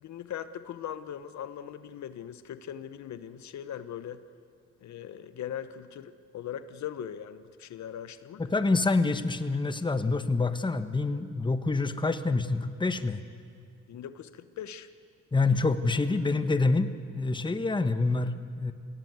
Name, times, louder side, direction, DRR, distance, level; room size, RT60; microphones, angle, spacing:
voice 1, 0.0-4.2 4.8-8.4 13.9-14.9, left 9 dB, 65° left, 12 dB, 0.9 m, -40 dB
voice 2, 8.4-13.2 15.3-16.9 17.1-18.7, left 3 dB, 15° left, 10 dB, 1.1 m, -26 dB
23.0 x 16.5 x 9.4 m, 2.2 s
cardioid pair, 90°, 30 cm